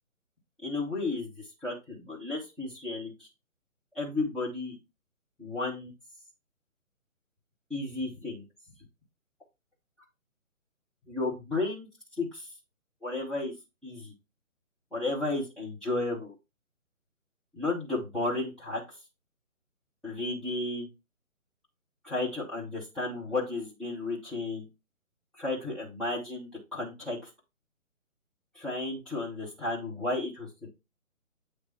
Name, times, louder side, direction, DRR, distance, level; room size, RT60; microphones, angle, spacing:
voice 1, 0.6-1.3 1.6-3.1 3.9-4.8 5.4-5.9 7.7-8.4 11.1-11.9 12.2-12.5 13.0-13.5 13.8-14.1 14.9-16.3 17.5-18.8 20.0-20.9 22.0-24.6 25.4-27.2 28.5-30.7, left 2 dB, ahead, -9 dB, 0.9 m, -33 dB
8.1 x 3.2 x 4.4 m, 0.25 s
figure-of-eight pair, 145°, 42 cm